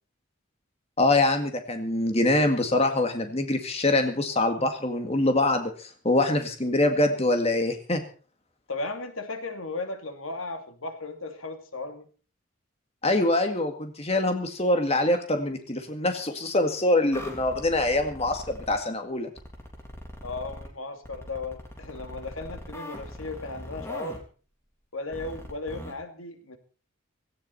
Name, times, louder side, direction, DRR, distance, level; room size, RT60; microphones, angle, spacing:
voice 1, 1.0-8.0 13.0-19.3, left 2 dB, 30° left, 6 dB, 2.0 m, -24 dB
voice 2, 8.7-12.1 20.2-24.2 24.9-26.6, left 3 dB, 85° left, 6 dB, 2.6 m, -36 dB
sound 1, 17.1-18.8 19.4-20.7 21.0-24.2 25.1-25.9, equal, 15° left, 3.3 m, -41 dB
17.5 x 16.5 x 4.3 m, 0.39 s
head